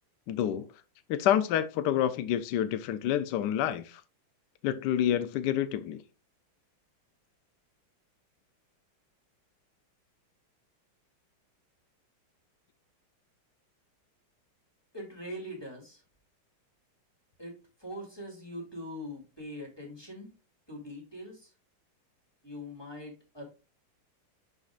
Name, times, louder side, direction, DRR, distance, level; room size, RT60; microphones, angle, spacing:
voice 1, 0.3-0.7 1.1-4.0 4.6-6.0, left 10 dB, 80° left, 0.9 m, -28 dB
voice 2, 14.9-16.0 17.4-20.3 20.7-21.5 22.4-23.4, equal, 10° left, 2.2 m, -42 dB
11.0 x 4.1 x 2.4 m
omnidirectional pair, 2.4 m